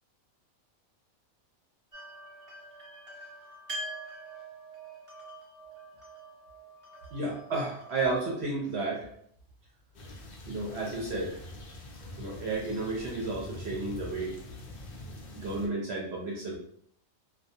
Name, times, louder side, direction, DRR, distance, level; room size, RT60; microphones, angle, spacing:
sound 1, 1.9-8.8, right 1 dB, 30° right, 0.7 m, -45 dB
voice 1, 7.1-9.0 10.5-11.4 12.2-14.4 15.4-16.6, right 3 dB, 65° right, -2 dB, 0.7 m, -32 dB
sound 2, 9.9-15.7, left 2 dB, 80° left, 0.5 m, -44 dB
2.3 x 2.2 x 2.6 m, 0.65 s
omnidirectional pair, 1.5 m